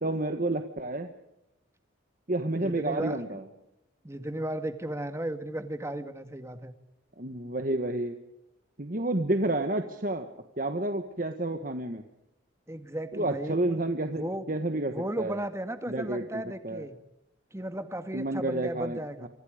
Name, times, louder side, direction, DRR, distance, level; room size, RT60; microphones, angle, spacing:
voice 1, 0.0-1.1 2.3-3.4 7.2-8.1 8.8-10.3 10.6-12.0 13.1-15.4 15.9-16.8 18.1-19.3, right 2 dB, 45° right, 6 dB, 1.5 m, -30 dB
voice 2, 2.5-3.2 4.0-6.7 12.7-13.8 14.1-14.5 14.9-17.0 17.5-19.3, right 1 dB, 15° right, 9 dB, 1.7 m, -35 dB
29.0 x 25.5 x 5.1 m, 0.89 s
head